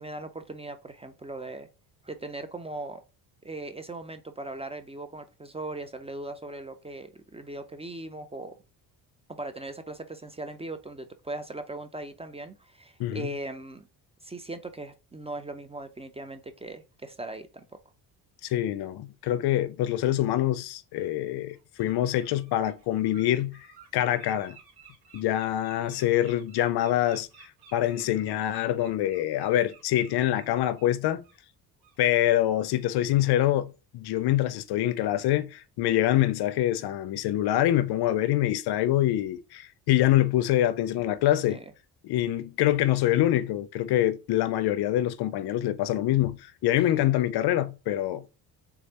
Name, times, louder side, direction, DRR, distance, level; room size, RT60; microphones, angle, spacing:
voice 1, 0.0-1.7 2.0-3.0 3.4-8.6 9.3-13.9 14.2-17.6 41.5-41.7 46.9-47.0, right 2 dB, 15° right, 0.4 m, -39 dB
voice 2, 18.4-23.7 23.9-24.6 25.1-31.2 32.0-41.6 42.0-48.3, left 13 dB, 65° left, 0.5 m, -25 dB
Bird, 20.9-21.1 21.5-21.9 22.2-30.9 31.2-31.4 31.8-32.0, right 6 dB, 70° right, 1.7 m, -54 dB
3.5 x 3.3 x 2.8 m
cardioid pair, 85°, 43 cm